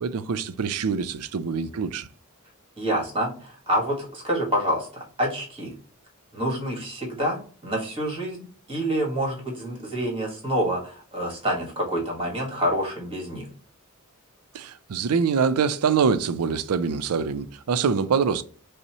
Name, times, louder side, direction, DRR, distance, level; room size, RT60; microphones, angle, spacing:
voice 1, 0.0-2.1 14.5-18.4, right 6 dB, 85° right, 0.4 m, -24 dB
voice 2, 2.8-5.7 6.3-13.5, equal, 25° right, 1.5 m, -27 dB
5.3 x 2.1 x 2.9 m
head